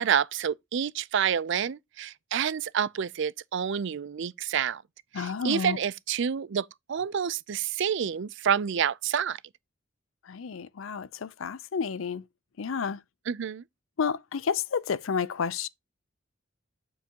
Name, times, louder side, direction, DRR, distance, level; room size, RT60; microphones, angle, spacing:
voice 1, 0.0-4.8 5.1-9.4 13.3-13.6, right 8 dB, 65° right, 0.5 m, -28 dB
voice 2, 5.1-5.8 10.3-12.2 12.6-13.0 14.0-15.7, left 6 dB, 85° left, 0.5 m, -30 dB
7.4 x 6.9 x 2.9 m
head